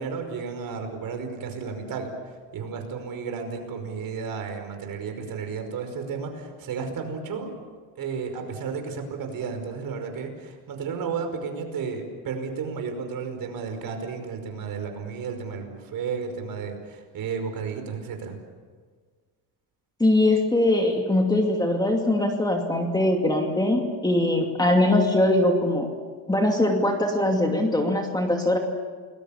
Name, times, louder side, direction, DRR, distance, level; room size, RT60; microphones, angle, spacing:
voice 1, 0.0-7.5 8.0-18.4, right 5 dB, 50° right, 5 dB, 5.3 m, -33 dB
voice 2, 20.0-25.9 26.3-28.6, left 1 dB, 10° left, 2 dB, 2.5 m, -22 dB
29.0 x 21.0 x 7.2 m, 1.5 s
cardioid pair, 135°, 44 cm